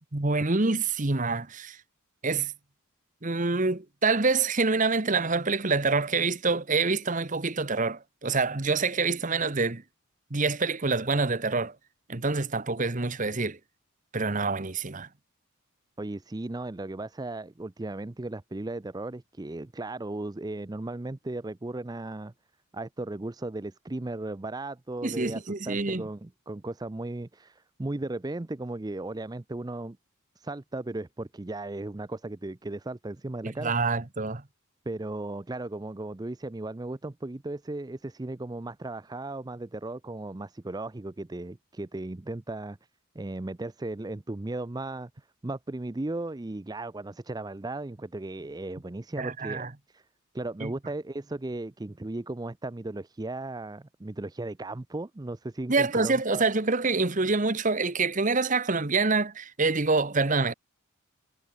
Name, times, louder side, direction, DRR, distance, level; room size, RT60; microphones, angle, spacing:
voice 1, 0.1-1.8 2.2-2.5 3.2-9.8 10.3-11.7 12.1-13.6 14.1-15.1 25.0-26.0 33.4-34.4 49.2-49.7 50.6-50.7 55.7-60.5, right 3 dB, 35° right, 1.1 m, -26 dB
voice 2, 16.0-22.3 22.7-30.0 30.4-33.7 34.9-42.8 43.1-50.1 50.3-56.4, right 2 dB, 15° right, 0.5 m, -36 dB
head